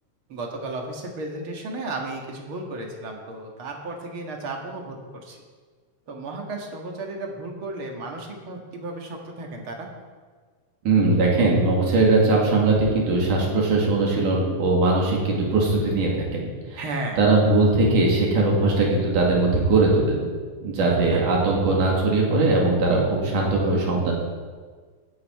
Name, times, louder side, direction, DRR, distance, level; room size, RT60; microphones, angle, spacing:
voice 1, 0.3-5.0 5.2-5.4 6.1-9.9 16.8-17.2 20.9-21.2, right 2 dB, 50° right, 1 dB, 2.3 m, -34 dB
voice 2, 10.9-16.8 17.2-20.3 20.6-24.1, right 3 dB, 90° right, -2 dB, 4.0 m, -20 dB
17.0 x 9.5 x 4.8 m, 1.5 s
omnidirectional pair, 3.5 m